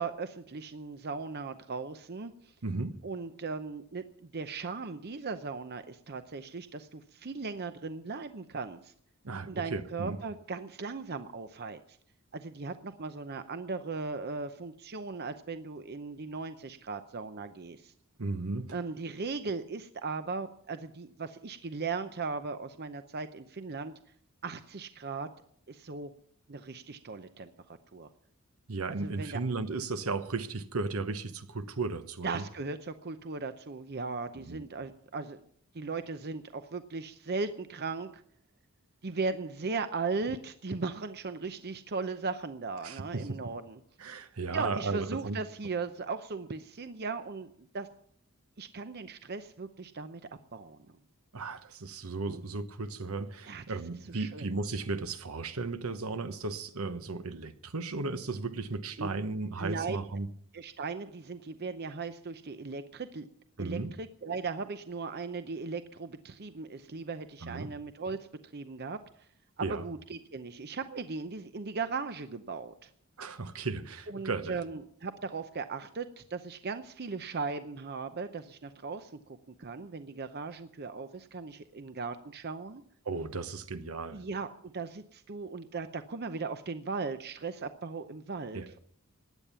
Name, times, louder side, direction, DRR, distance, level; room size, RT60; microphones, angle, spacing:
voice 1, 0.0-2.5 3.0-8.9 9.5-11.8 12.3-17.9 18.7-23.9 24.4-25.3 25.7-26.1 26.5-28.1 28.9-29.4 32.2-35.4 35.7-38.2 39.0-43.8 44.5-47.9 48.6-50.2 50.5-51.0 52.3-52.4 53.5-53.8 54.2-54.5 59.0-59.1 59.6-60.0 60.5-63.3 63.6-68.2 68.5-69.0 69.6-72.9 74.1-79.1 79.6-82.8 84.1-88.8, right 4 dB, 50° right, 0.7 m, -38 dB
voice 2, 2.6-3.0 9.2-10.2 18.2-18.8 28.7-32.4 34.3-34.6 42.8-43.4 44.0-45.4 51.3-60.3 63.6-63.9 67.4-67.7 69.6-69.8 73.2-74.6 83.0-84.2 88.5-88.7, right 3 dB, 70° right, 1.0 m, -35 dB
16.5 x 10.0 x 6.9 m
head